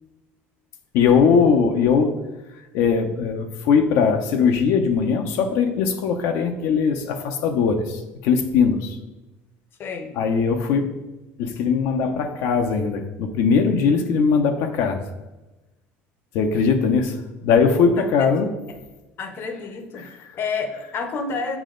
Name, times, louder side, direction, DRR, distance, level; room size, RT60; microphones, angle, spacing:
voice 1, 0.9-2.2 2.7-9.0 10.1-11.0 11.4-15.0 16.3-18.5 20.0-20.1, left 5 dB, 70° left, 6 dB, 0.8 m, -20 dB
voice 2, 9.8-10.2 18.0-18.1 19.2-21.6, left 4 dB, 45° left, 7 dB, 0.9 m, -29 dB
7.2 x 4.2 x 3.8 m, 1.0 s
supercardioid pair, 115°, 6 cm